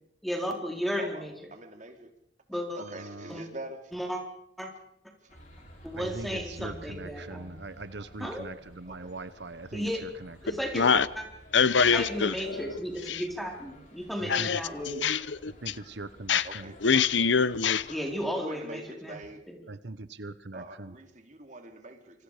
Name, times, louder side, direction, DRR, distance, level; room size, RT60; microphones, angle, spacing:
voice 1, 0.2-1.3 2.5-2.8 3.3-3.4 3.9-4.2 4.6-4.7 5.8-7.6 8.2-8.5 9.7-10.1 10.4-11.2 11.9-15.1 17.9-19.2 19.5-19.6, equal, ahead, 4.3 m, -34 dB
voice 2, 1.5-2.1 2.8-3.9 5.2-5.4 6.1-6.2 8.9-9.2 16.4-16.8 18.3-19.4 20.5-22.2, right 1 dB, 40° right, 3.6 m, -44 dB
voice 3, 2.8-3.4 6.0-10.4 14.2-14.6 15.6-16.7 19.7-20.9, right 2 dB, 70° right, 1.1 m, -41 dB
sound 1, 5.3-18.3, equal, 45° left, 7.2 m, -51 dB
voice 4, 10.7-11.1 11.5-12.7 13.1-13.2 14.3-14.6 14.9-15.7 16.3-16.5 16.8-17.9, left 6 dB, 85° left, 0.9 m, -24 dB
27.5 x 25.5 x 5.1 m
head